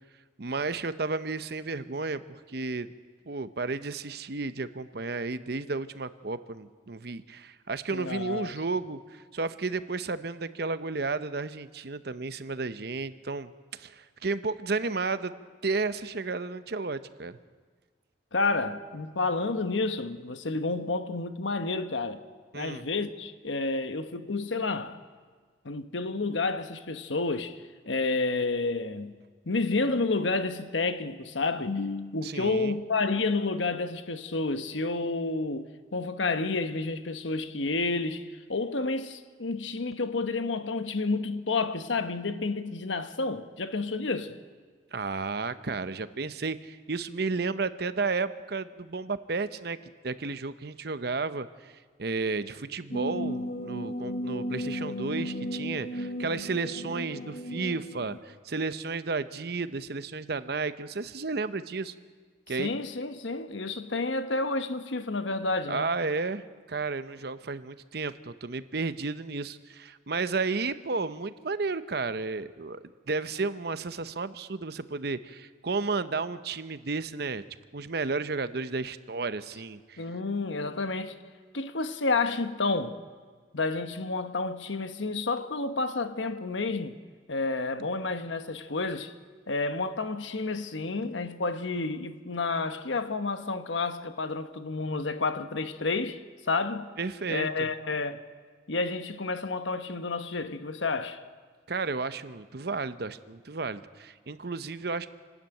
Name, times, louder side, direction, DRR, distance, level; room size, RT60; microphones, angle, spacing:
voice 1, 0.4-2.2 2.5-2.9 3.3-15.3 15.6-17.4 22.5-22.9 32.2-32.8 44.9-49.8 50.0-51.7 52.0-61.9 62.5-62.7 65.7-77.4 77.7-80.1 97.0-97.7 101.7-105.1, right 4 dB, 60° right, 0.8 m, -32 dB
voice 2, 7.9-8.5 18.3-22.2 22.5-25.0 25.6-29.1 29.5-44.4 62.6-65.9 80.0-81.2 81.5-83.0 83.5-87.0 87.3-89.1 89.5-96.2 96.5-96.9 97.3-98.2 98.7-101.2, left 3 dB, 85° left, 1.2 m, -30 dB
sound 1, 52.9-58.2, equal, 50° left, 1.2 m, -35 dB
27.0 x 12.5 x 9.1 m
head